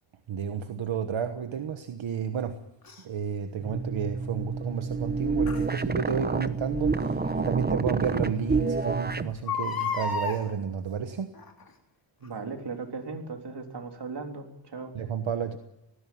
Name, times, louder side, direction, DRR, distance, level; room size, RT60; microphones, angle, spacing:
voice 1, 0.3-2.6 3.0-11.3 14.9-15.6, right 7 dB, 85° right, 7 dB, 1.3 m, -31 dB
Crying sobbing, 2.9-3.0 5.5-5.7 7.2-7.3 7.9-8.0 8.2-8.3 9.3-10.4 11.4-11.7 12.3-12.4, left 5 dB, 50° left, 3.6 m, -31 dB
sound 1, 3.6-9.3, right 4 dB, 20° right, 0.9 m, -28 dB
voice 2, 12.2-14.9, right 4 dB, 60° right, 3 dB, 3.7 m, -37 dB
19.5 x 15.0 x 9.3 m, 0.90 s
wide cardioid pair, 85°, 45 cm